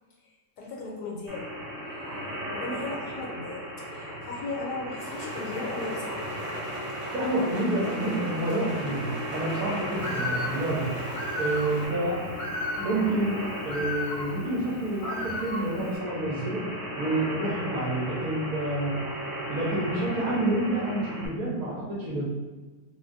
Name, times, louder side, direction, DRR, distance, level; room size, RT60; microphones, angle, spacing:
voice 1, 0.6-1.5 1.9-6.2, left 3 dB, 75° left, -2 dB, 1.2 m, -37 dB
sound 1, 1.3-21.3, equal, 50° right, 1.1 m, -36 dB
sound 2, 5.0-11.9, equal, 25° right, 0.6 m, -42 dB
voice 2, 7.1-10.9 11.3-12.4 12.7-16.6 17.0-19.0 19.5-22.3, right 2 dB, 65° right, -5 dB, 1.0 m, -28 dB
Bird, 10.0-16.0, left 1 dB, 90° left, 1.3 m, -35 dB
3.7 x 2.2 x 2.5 m, 1.3 s
omnidirectional pair, 1.9 m